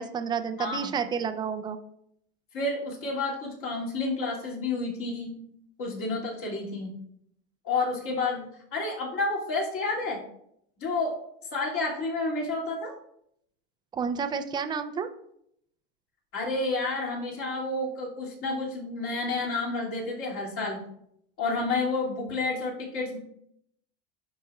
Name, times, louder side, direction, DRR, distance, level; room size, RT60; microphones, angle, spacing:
voice 1, 0.0-1.8 13.9-15.1, right 6 dB, 15° right, 9 dB, 0.4 m, -30 dB
voice 2, 0.6-0.9 2.5-5.3 5.8-6.9 7.6-10.2 10.8-11.1 11.5-12.9 16.3-20.8 21.4-23.2, left 3 dB, 45° left, -3 dB, 2.4 m, -30 dB
12.5 x 4.2 x 2.3 m, 0.71 s
supercardioid pair, 125°, 32 cm